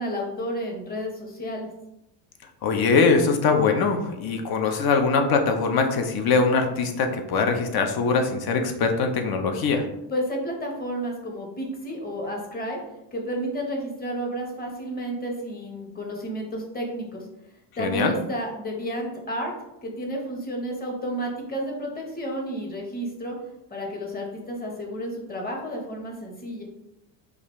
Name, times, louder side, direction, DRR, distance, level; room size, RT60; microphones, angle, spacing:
voice 1, 0.0-1.7 10.1-12.8 13.1-17.2 17.8-19.5 19.8-23.3 23.7-26.6, equal, 20° left, 0 dB, 1.0 m, -31 dB
voice 2, 2.6-9.8 17.8-18.1, left 4 dB, 50° left, 5 dB, 0.7 m, -22 dB
5.1 x 2.5 x 3.1 m, 0.87 s
cardioid pair, 110°, 48 cm